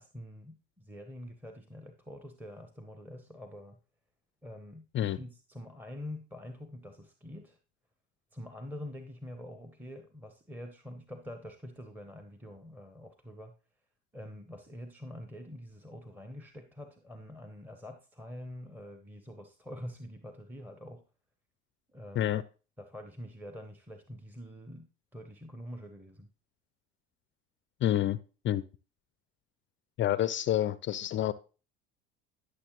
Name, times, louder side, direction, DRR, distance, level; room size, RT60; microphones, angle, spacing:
voice 1, 0.0-3.8 4.4-7.6 8.3-13.5 14.1-21.0 21.9-22.3 22.8-26.3, left 1 dB, 5° right, 7 dB, 0.8 m, -46 dB
voice 2, 27.8-28.2 28.4-28.6 30.0-31.3, left 12 dB, 35° left, 17 dB, 0.4 m, -28 dB
11.5 x 6.6 x 3.0 m, 0.34 s
hypercardioid pair, 70°, 33 cm